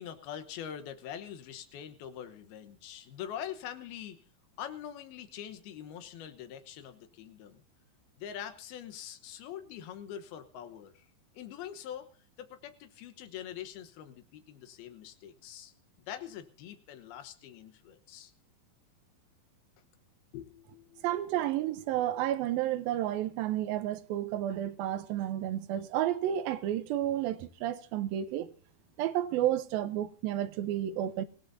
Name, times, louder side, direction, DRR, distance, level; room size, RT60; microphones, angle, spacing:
voice 1, 0.0-4.2 4.6-7.6 8.2-11.1 11.3-12.1 12.4-15.7 16.1-18.3 20.3-21.2, left 9 dB, 80° left, 3.0 m, -44 dB
voice 2, 21.0-28.5 29.0-31.3, right 12 dB, 75° right, 2.5 m, -31 dB
26.0 x 16.5 x 2.7 m
omnidirectional pair, 4.4 m